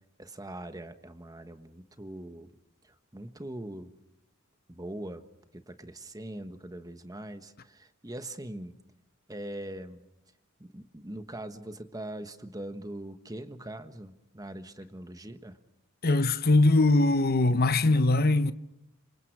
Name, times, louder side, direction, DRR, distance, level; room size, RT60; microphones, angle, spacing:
voice 1, 0.2-2.5 3.1-3.9 4.7-5.3 5.5-8.7 9.3-10.0 10.6-15.6, right 1 dB, 20° right, 1.4 m, -41 dB
voice 2, 16.0-18.5, left 2 dB, 45° left, 0.9 m, -22 dB
27.0 x 26.5 x 4.8 m
head